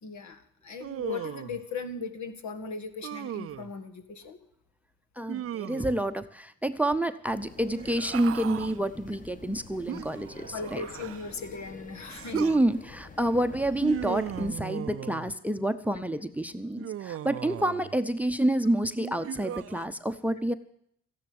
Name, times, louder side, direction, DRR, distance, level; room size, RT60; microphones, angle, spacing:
voice 1, 0.0-4.4 10.5-12.6, left 4 dB, 70° left, 8 dB, 2.0 m, -38 dB
Human voice, 0.8-1.6 3.0-3.7 5.3-6.1 7.6-8.8 9.9-11.4 12.1-12.6 13.8-15.4 16.8-18.0 19.0-19.9, right 11 dB, 50° right, 0.5 m, -37 dB
voice 2, 5.2-10.9 12.3-20.5, right 1 dB, 5° right, 12 dB, 0.8 m, -28 dB
sound 1, 7.3-14.5, left 3 dB, 25° left, 1.5 m, -47 dB
14.0 x 10.5 x 8.7 m, 0.69 s
cardioid pair, 90°, 30 cm